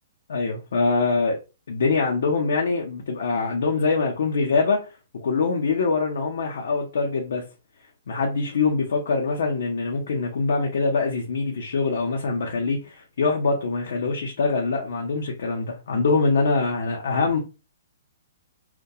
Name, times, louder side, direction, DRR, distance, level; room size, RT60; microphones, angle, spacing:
voice 1, 0.3-1.4 1.7-4.9 5.2-7.4 8.1-17.4, left 4 dB, 65° left, 0.5 m, -24 dB
2.3 x 2.2 x 2.7 m
hypercardioid pair, 175°, 0 cm